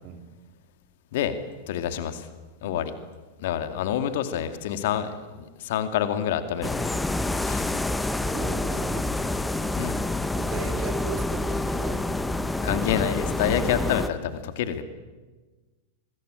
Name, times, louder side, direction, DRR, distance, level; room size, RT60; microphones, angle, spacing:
voice 1, 1.7-2.3 2.6-2.9 3.4-6.9 7.4-7.7 9.8-10.0 12.6-14.8, left 9 dB, 55° left, 10 dB, 2.2 m, -27 dB
sound 1, 6.6-14.1, left 2 dB, 5° left, 1.2 m, -27 dB
voice 2, 8.3-9.1 10.3-12.2, right 7 dB, 40° right, 6 dB, 3.7 m, -37 dB
25.0 x 22.0 x 8.9 m, 1.3 s
figure-of-eight pair, 90°, 0 cm